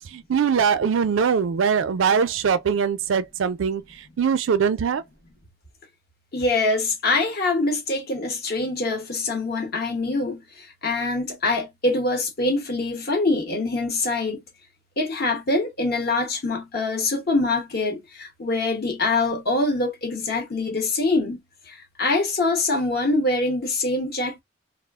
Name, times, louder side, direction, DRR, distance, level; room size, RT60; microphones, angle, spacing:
voice 1, 0.1-3.8 4.2-5.0, right 6 dB, 75° right, 0.4 m, -22 dB
voice 2, 6.3-14.4 15.0-21.4 21.7-24.4, left 2 dB, 50° left, 0.9 m, -24 dB
2.3 x 2.0 x 3.4 m
head